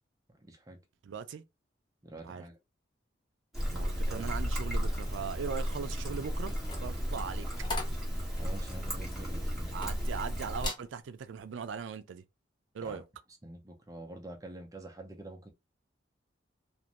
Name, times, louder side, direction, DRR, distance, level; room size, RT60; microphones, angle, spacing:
voice 1, 0.3-0.8 2.0-2.6 4.1-4.2 8.3-9.9 12.8-13.0 13.4-15.5, right 2 dB, 20° right, 0.5 m, -46 dB
voice 2, 1.0-1.4 2.2-2.4 3.7-6.5 6.8-7.5 9.7-12.2 12.7-13.0, right 6 dB, 85° right, 0.4 m, -39 dB
Trickle dribble, 3.5-10.7, equal, ahead, 0.9 m, -34 dB
sound 1, 6.4-10.2 10.6-10.9 11.4-11.6, left 3 dB, 25° left, 0.6 m, -42 dB
2.5 x 2.1 x 2.9 m
head